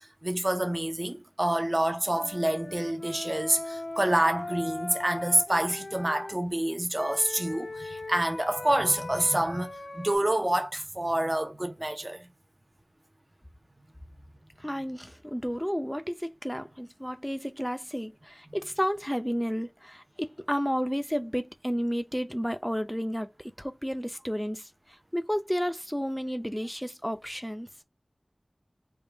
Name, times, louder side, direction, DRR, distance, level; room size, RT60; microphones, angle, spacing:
voice 1, 0.0-12.3, right 1 dB, 35° right, 0.7 m, -27 dB
Wind instrument woodwind instrument, 2.1-6.3 6.9-10.2, left 2 dB, 80° left, 0.7 m, -39 dB
voice 2, 14.6-24.7 25.1-27.7, equal, 5° left, 0.6 m, -32 dB
3.6 x 2.4 x 3.4 m
wide cardioid pair, 50°, 0 cm